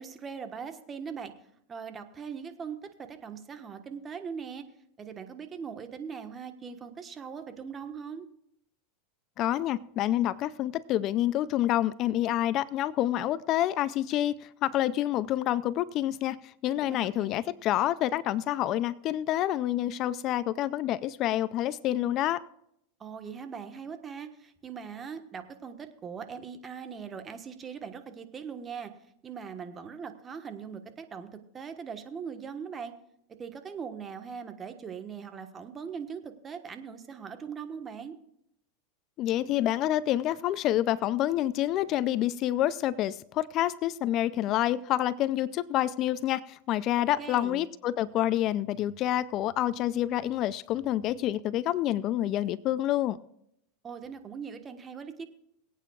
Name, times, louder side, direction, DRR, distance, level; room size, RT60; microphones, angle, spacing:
voice 1, 0.0-1.3 1.7-4.7 5.0-8.3 16.8-17.3 23.0-28.9 29.2-32.9 33.4-38.2 47.2-47.6 53.8-55.3, right 6 dB, 25° right, 8 dB, 1.3 m, -40 dB
voice 2, 9.4-22.4 39.2-53.2, left 13 dB, 45° left, 18 dB, 0.4 m, -28 dB
22.5 x 9.0 x 2.4 m, 0.74 s
supercardioid pair, 120°, 0 cm